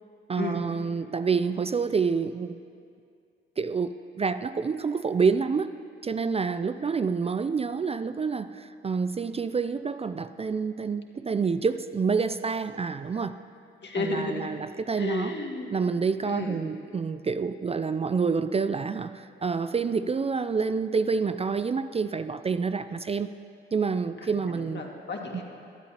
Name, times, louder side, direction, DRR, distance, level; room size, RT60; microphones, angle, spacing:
voice 1, 0.3-2.6 3.6-5.7 6.0-13.4 14.0-15.3 15.7-23.3 23.7-24.8 25.3-25.4, right 5 dB, 20° right, 12 dB, 0.4 m, -28 dB
voice 2, 13.8-14.5 15.0-15.7 16.2-16.6 24.2-25.4, left 3 dB, 40° left, 1 dB, 2.0 m, -33 dB
19.0 x 12.0 x 2.9 m, 2.3 s
hypercardioid pair, 45°, 29 cm